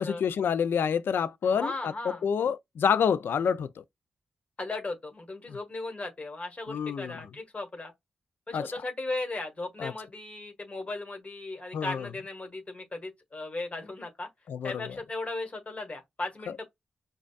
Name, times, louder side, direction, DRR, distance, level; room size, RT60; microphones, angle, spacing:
voice 1, 0.0-1.9 2.2-3.8 5.5-5.6 6.7-7.2 8.5-8.7 9.8-9.9 11.7-12.1 14.5-15.0, left 7 dB, 75° left, 0.4 m, -28 dB
voice 2, 1.4-2.2 4.6-7.9 8.5-14.3 14.6-16.6, left 2 dB, 35° left, 1.6 m, -37 dB
5.0 x 2.4 x 2.3 m
supercardioid pair, 40°, 4 cm